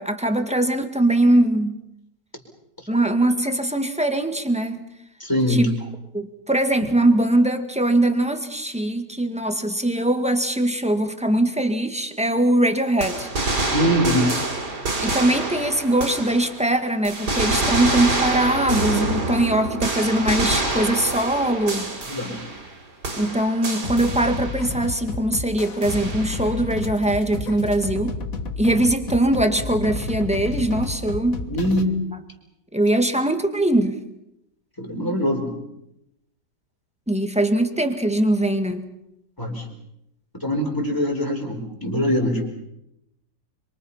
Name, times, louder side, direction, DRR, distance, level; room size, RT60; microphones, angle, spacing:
voice 1, 0.0-1.8 2.9-4.8 5.5-5.7 6.1-13.3 15.0-21.9 23.2-28.2 28.6-31.4 32.7-34.0 37.1-38.9, right 1 dB, 5° right, 6 dB, 1.8 m, -21 dB
voice 2, 5.2-5.7 13.7-14.3 22.1-22.4 31.5-32.0 34.8-35.5 39.4-39.6 40.3-42.4, equal, 10° left, 1 dB, 5.0 m, -23 dB
sound 1, 13.0-16.7 17.0-22.8 23.0-24.7 25.8-26.5, right 2 dB, 75° right, 4.2 m, -26 dB
sound 2, 23.8-31.8, left 3 dB, 55° left, 1.9 m, -31 dB
27.0 x 25.0 x 5.8 m, 0.83 s
omnidirectional pair, 1.8 m